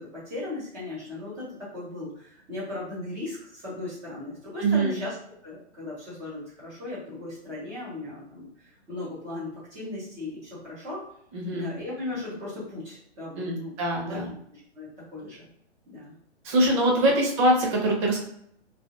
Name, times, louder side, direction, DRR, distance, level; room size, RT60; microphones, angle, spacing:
voice 1, 0.0-5.1 5.4-11.0 11.5-13.7 14.0-14.2 14.5-15.5 15.9-16.1 17.0-17.1, left 2 dB, 5° right, -9 dB, 0.3 m, -37 dB
voice 2, 4.6-5.0 11.3-11.7 13.4-14.3 16.4-18.3, right 1 dB, 25° right, -1 dB, 0.8 m, -23 dB
2.6 x 2.5 x 2.7 m, 0.68 s
hypercardioid pair, 130°, 34 cm